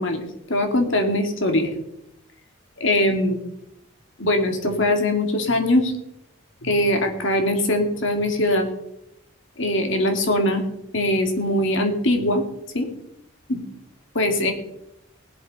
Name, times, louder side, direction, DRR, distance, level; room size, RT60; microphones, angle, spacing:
voice 1, 0.0-1.8 2.8-3.4 4.2-5.9 6.6-8.7 9.6-10.7 10.9-12.4 12.7-12.9 13.5-13.6 14.1-14.5, left 1 dB, 60° left, 5 dB, 2.3 m, -21 dB
20.0 x 8.0 x 5.4 m, 0.83 s
head